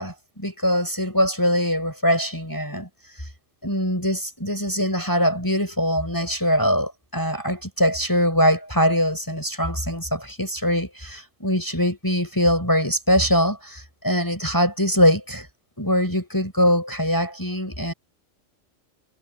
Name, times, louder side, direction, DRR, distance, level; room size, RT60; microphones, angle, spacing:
voice 1, 0.0-2.9 3.2-3.3 3.6-15.5 15.8-17.9, equal, 15° left, 6.0 m, -22 dB
omnidirectional pair, 1.4 m